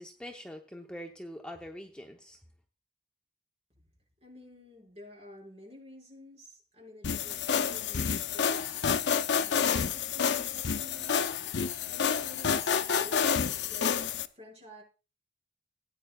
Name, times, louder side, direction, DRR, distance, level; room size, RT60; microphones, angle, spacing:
voice 1, 0.0-2.4, equal, 5° left, 0.8 m, -44 dB
voice 2, 4.2-8.9 9.3-14.8, left 1 dB, 40° right, 5.8 m, -50 dB
sound 1, 7.0-14.3, left 7 dB, 85° left, 0.6 m, -29 dB
18.0 x 9.3 x 2.4 m
head